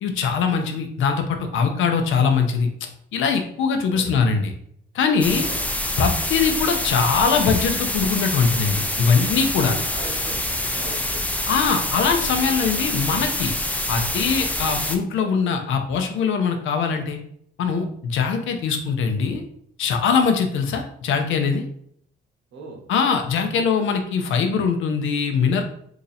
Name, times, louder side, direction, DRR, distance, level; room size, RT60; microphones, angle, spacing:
voice 1, 0.0-4.5 4.9-5.4 6.0-9.8 11.5-13.5 13.9-17.2 17.6-19.4 19.8-21.6 22.9-25.6, left 5 dB, 80° left, 5 dB, 0.6 m, -22 dB
voice 2, 3.9-4.2 5.4-5.7 9.6-11.2 22.5-22.8, right 4 dB, 70° right, 0 dB, 1.0 m, -39 dB
sound 1, 5.2-15.0, left 1 dB, 5° left, 0.4 m, -26 dB
2.9 x 2.7 x 4.0 m, 0.67 s
cardioid pair, 90°, 20 cm